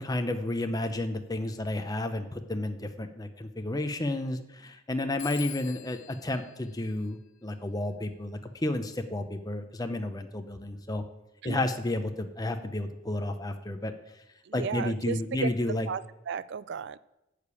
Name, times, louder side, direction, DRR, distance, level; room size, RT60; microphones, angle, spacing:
voice 1, 0.0-11.0 11.4-13.9 14.5-15.9, left 1 dB, 20° left, 7 dB, 0.6 m, -31 dB
Telephone, 5.2-7.7, left 12 dB, 65° left, 0.7 m, -46 dB
voice 2, 14.5-15.5 15.9-17.0, right 6 dB, 55° right, 17 dB, 0.4 m, -34 dB
11.5 x 5.0 x 8.4 m, 0.93 s
head